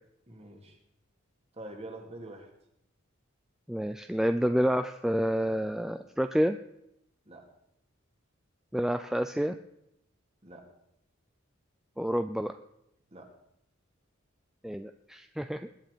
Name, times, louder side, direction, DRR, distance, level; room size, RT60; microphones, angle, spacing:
voice 1, 0.3-0.8 1.5-2.5 7.3-7.5 10.4-10.7 13.1-13.3, right 1 dB, 30° right, 3 dB, 2.6 m, -45 dB
voice 2, 3.7-6.6 8.7-9.6 12.0-12.5 14.6-15.7, equal, ahead, 9 dB, 0.4 m, -29 dB
20.5 x 9.1 x 5.2 m, 0.80 s
head